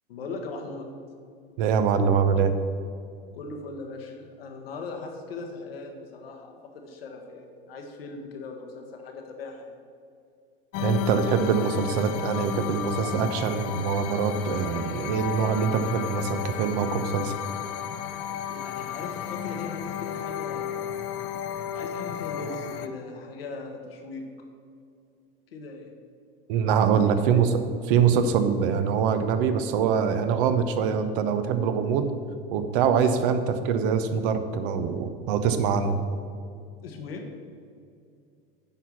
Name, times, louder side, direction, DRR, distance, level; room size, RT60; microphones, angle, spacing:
voice 1, 0.1-0.9 3.3-9.7 18.5-20.9 21.7-24.2 25.5-25.9 27.2-27.3 36.8-37.2, left 3 dB, 85° left, 3 dB, 1.3 m, -39 dB
voice 2, 1.6-2.5 10.8-17.3 26.5-27.6 27.8-32.1 32.5-36.0, right 6 dB, 65° right, 9 dB, 0.9 m, -24 dB
sound 1, 10.7-22.9, left 10 dB, 50° left, 0.6 m, -33 dB
8.9 x 4.7 x 5.9 m, 2.3 s
hypercardioid pair, 90°, 29 cm